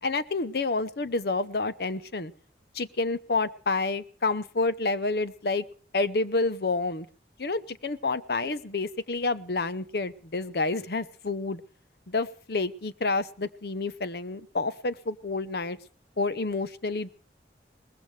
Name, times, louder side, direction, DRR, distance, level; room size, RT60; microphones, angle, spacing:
voice 1, 0.0-2.3 2.7-5.6 5.9-7.1 7.4-11.6 12.1-15.8 16.2-17.1, left 3 dB, 60° left, 14 dB, 0.8 m, -29 dB
22.5 x 19.5 x 3.3 m, 0.39 s
head